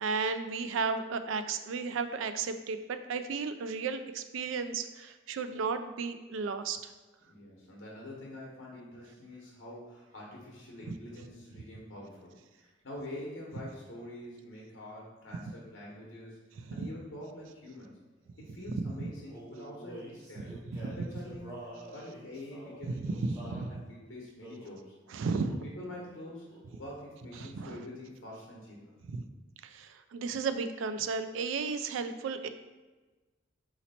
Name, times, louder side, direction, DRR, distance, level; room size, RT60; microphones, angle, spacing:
voice 1, 0.0-6.9 10.9-11.0 18.8-18.9 20.4-20.9 23.0-23.2 23.5-23.7 25.1-25.6 27.4-27.8 29.1-29.2 29.6-32.5, right 5 dB, 80° right, 10 dB, 0.3 m, -34 dB
voice 2, 7.3-18.0 18.4-20.5 20.8-24.9 25.6-26.5 26.8-28.9, left 1 dB, 85° left, -3 dB, 1.0 m, -46 dB
Male singing, 19.3-23.7 24.4-24.8 25.4-25.7 26.0-26.9, right 1 dB, 15° right, 1.0 m, -48 dB
4.1 x 2.9 x 4.1 m, 1.2 s
head